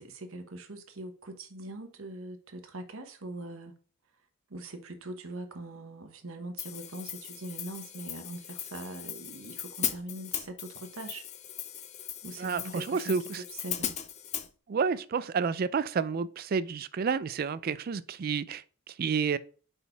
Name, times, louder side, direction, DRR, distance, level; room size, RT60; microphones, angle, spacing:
voice 1, 0.0-3.7 4.5-11.2 12.2-13.2 13.5-13.9, right 2 dB, 65° right, 1.0 m, -42 dB
Hi-hat, 6.6-14.5, left 10 dB, 30° left, 0.4 m, -38 dB
voice 2, 12.4-13.4 14.7-19.4, right 5 dB, 40° right, 0.3 m, -30 dB
5.2 x 4.2 x 4.4 m
head